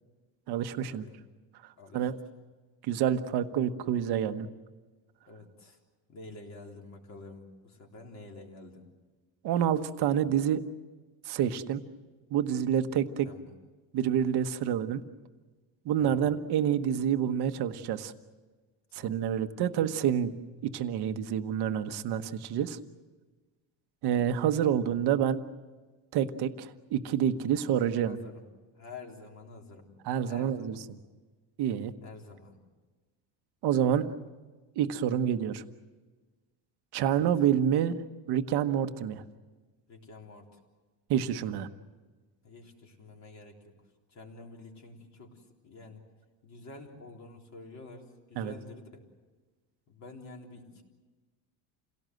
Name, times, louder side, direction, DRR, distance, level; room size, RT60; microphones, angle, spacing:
voice 1, 0.5-1.0 1.9-2.1 2.8-4.5 9.4-10.6 11.3-11.8 12.3-13.3 13.9-15.0 15.8-18.1 18.9-20.3 20.6-22.8 24.0-25.4 26.1-28.2 30.1-30.7 31.6-31.9 33.6-34.1 34.8-35.6 36.9-38.0 38.3-39.2 41.1-41.7 48.4-48.5, right 9 dB, 60° right, 9 dB, 1.3 m, -28 dB
voice 2, 1.8-2.1 5.3-5.8 6.1-8.9 13.2-13.5 16.0-16.3 19.0-19.1 24.7-24.9 28.1-28.5 28.7-29.9 30.3-30.8 32.0-32.6 37.1-37.2 39.9-40.6 42.4-43.7 44.1-46.0 46.4-49.1 49.9-50.8, left 3 dB, 35° left, 1 dB, 3.6 m, -48 dB
28.0 x 17.5 x 7.8 m, 1.3 s
cardioid pair, 150°, 45 cm